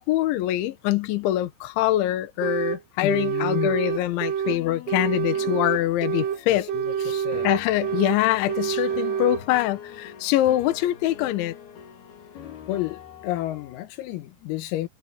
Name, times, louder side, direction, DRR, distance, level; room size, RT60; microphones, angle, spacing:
voice 1, 0.0-6.7 7.4-11.5, left 14 dB, 70° left, 3.6 m, -24 dB
sound 1, 2.4-2.8 3.1-4.6 4.9-6.4 6.7-8.2 8.5-9.4, right 8 dB, 80° right, 1.9 m, -27 dB
voice 2, 3.0-3.7 6.5-7.5 12.7-14.9, left 15 dB, 85° left, 4.1 m, -31 dB
sound 2, 3.8-13.8, left 9 dB, 55° left, 3.9 m, -44 dB
omnidirectional pair, 5.9 m